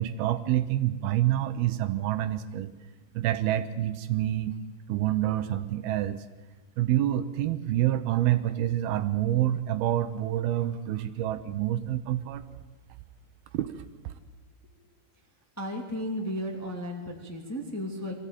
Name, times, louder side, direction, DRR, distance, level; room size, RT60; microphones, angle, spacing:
voice 1, 0.0-2.7 3.2-4.6 4.9-6.2 6.8-12.4 13.5-14.1, right 13 dB, 80° right, 11 dB, 2.6 m, -27 dB
voice 2, 15.6-18.1, equal, 5° left, 0 dB, 1.6 m, -34 dB
23.0 x 15.0 x 9.1 m, 1.2 s
omnidirectional pair, 4.6 m